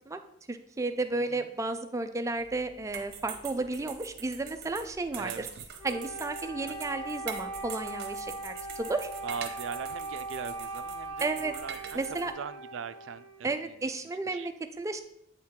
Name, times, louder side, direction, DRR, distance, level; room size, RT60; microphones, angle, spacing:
voice 1, 0.5-5.5 5.8-9.1 11.2-11.5 11.9-12.3 13.4-15.0, right 3 dB, 15° right, 8 dB, 0.4 m, -33 dB
voice 2, 1.1-1.5 5.2-5.6 9.2-12.0 12.4-13.9 14.3-14.5, right 6 dB, 80° right, 13 dB, 0.4 m, -41 dB
sound 1, 2.4-12.3, right 7 dB, 60° right, 0.9 m, -44 dB
Wind instrument woodwind instrument, 5.8-13.5, right 2 dB, 25° left, 1.6 m, -40 dB
8.4 x 4.4 x 3.7 m, 0.77 s
head